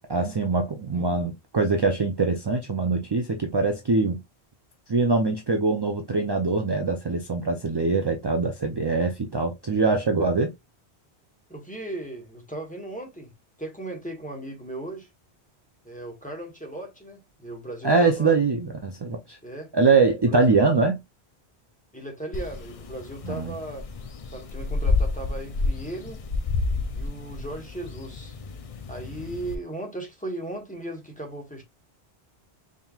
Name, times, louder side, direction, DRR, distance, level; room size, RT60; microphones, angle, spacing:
voice 1, 0.1-4.2 4.9-10.5 17.8-19.4 19.7-21.0 23.3-23.5, right 3 dB, 40° right, 0.3 m, -23 dB
voice 2, 11.5-13.3 13.6-15.1 15.8-18.4 19.4-19.7 20.3-20.6 21.9-23.9 24.3-26.2 26.9-28.3 28.9-31.6, right 2 dB, 10° left, 1.1 m, -37 dB
sound 1, 22.3-29.6, left 3 dB, 50° left, 0.4 m, -30 dB
4.2 x 3.7 x 2.3 m
omnidirectional pair, 1.1 m